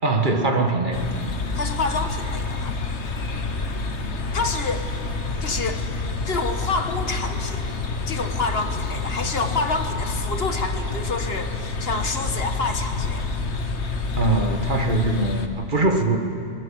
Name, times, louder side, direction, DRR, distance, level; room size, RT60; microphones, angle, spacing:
voice 1, 0.0-1.0 14.1-16.2, right 3 dB, 45° right, 5 dB, 1.8 m, -22 dB
sound 1, 0.9-15.5, left 3 dB, 75° left, 1.6 m, -28 dB
voice 2, 1.5-2.8 4.3-4.9 5.4-5.9 6.2-7.7 8.1-13.3, left 3 dB, 60° left, 7 dB, 1.7 m, -28 dB
22.0 x 21.0 x 8.7 m, 2.7 s
omnidirectional pair, 1.2 m